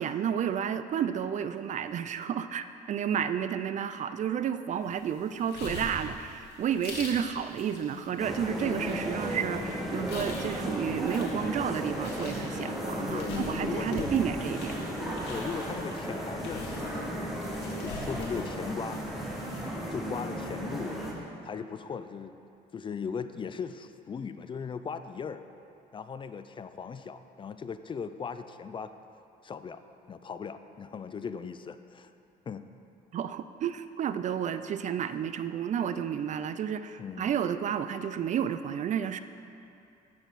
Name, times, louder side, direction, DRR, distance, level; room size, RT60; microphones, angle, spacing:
voice 1, 0.0-14.8 33.1-39.2, right 8 dB, 45° right, 11 dB, 0.4 m, -31 dB
sound 1, 4.8-19.6, left 2 dB, 80° left, 1.9 m, -45 dB
voice 2, 7.9-8.3 13.1-14.1 15.3-17.1 17.8-19.1 19.4-19.5 19.9-21.0 21.4-22.4 22.7-25.4 25.9-28.9 29.4-29.8 30.1-32.1 32.5-32.6 37.0-37.4, left 6 dB, 30° left, 11 dB, 0.4 m, -38 dB
sound 2, 8.2-21.1, equal, ahead, 1.6 m, -34 dB
15.5 x 6.4 x 4.1 m, 2.7 s
cardioid pair, 110°, 17 cm